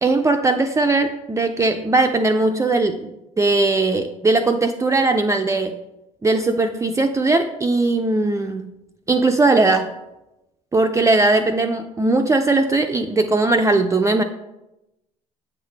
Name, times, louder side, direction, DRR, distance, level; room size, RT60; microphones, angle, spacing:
voice 1, 0.0-5.7 6.2-8.7 9.1-9.9 10.7-14.2, right 2 dB, 15° right, 5 dB, 0.4 m, -19 dB
7.6 x 3.9 x 3.3 m, 0.93 s
hypercardioid pair, 55°, 18 cm